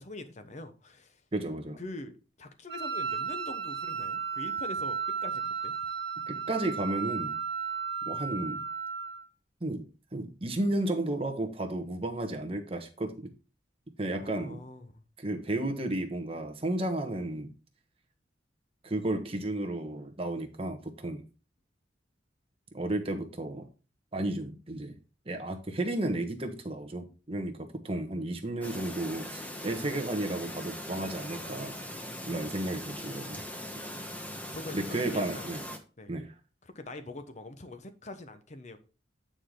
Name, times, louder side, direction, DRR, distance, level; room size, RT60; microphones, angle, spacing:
voice 1, 0.0-1.2 1.8-5.7 14.2-15.0 31.8-32.4 34.5-35.5 36.0-36.1 36.6-38.8, left 2 dB, 40° left, 1.0 m, -44 dB
voice 2, 1.3-1.8 6.3-7.4 8.0-8.6 9.6-9.9 10.1-13.3 14.0-14.6 15.2-17.5 18.8-21.2 22.7-23.7 24.1-25.0 25.3-27.5 27.8-31.8 32.3-33.4 34.7-35.6 36.1-36.3, right 1 dB, 30° right, 1.1 m, -33 dB
Wind instrument woodwind instrument, 2.7-9.3, right 6 dB, 60° right, 1.4 m, -34 dB
Chirp tweet, 28.6-35.8, left 1 dB, 10° left, 1.0 m, -40 dB
8.9 x 4.9 x 3.8 m
head